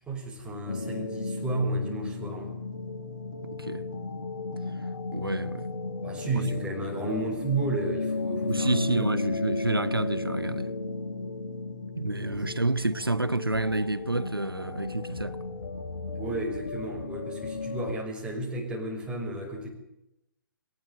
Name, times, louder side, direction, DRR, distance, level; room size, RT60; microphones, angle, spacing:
voice 1, 0.1-2.5 6.0-9.2 12.2-12.7 16.2-19.7, right 2 dB, 10° right, 6.0 m, -32 dB
sound 1, 0.7-17.9, left 3 dB, 60° left, 3.3 m, -34 dB
voice 2, 3.4-3.9 5.1-5.7 6.4-6.5 8.5-10.7 12.0-15.4, right 2 dB, 90° right, 0.9 m, -29 dB
21.5 x 19.0 x 9.1 m
figure-of-eight pair, 130°, 12 cm